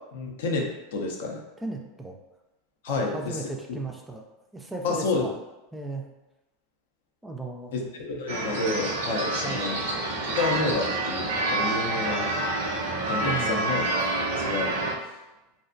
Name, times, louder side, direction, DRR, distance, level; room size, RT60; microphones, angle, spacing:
voice 1, 0.1-1.4 2.8-3.5 4.8-5.3 7.7-9.8 10.4-12.3 13.1-13.8 14.2-14.8, left 3 dB, 80° left, 1 dB, 0.4 m, -29 dB
voice 2, 1.6-2.2 2.9-4.2 4.5-5.3 5.7-6.0 7.2-7.7 9.4-9.7 13.2-13.6, right 3 dB, 10° right, 1 dB, 0.3 m, -35 dB
sound 1, 8.3-14.9, right 2 dB, 80° right, 0.5 m, -28 dB
2.4 x 2.0 x 2.5 m, 1.0 s
hypercardioid pair, 105°, 0 cm